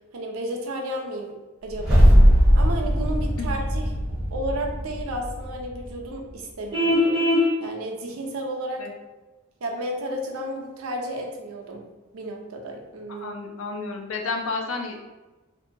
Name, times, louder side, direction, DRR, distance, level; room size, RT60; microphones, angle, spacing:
voice 1, 0.1-1.3 1.6-2.1 2.5-3.9 4.3-7.2 7.6-8.9 9.6-11.8 12.1-13.3, right 1 dB, 90° right, 1 dB, 0.5 m, -32 dB
sound 1, 1.7-6.1, equal, 5° right, 1.1 m, -19 dB
Vehicle horn car horn honking, 6.7-7.5, left 1 dB, 20° right, 0.5 m, -20 dB
voice 2, 13.2-15.0, left 3 dB, 75° left, 1 dB, 0.5 m, -31 dB
2.7 x 2.2 x 2.6 m, 1.1 s
head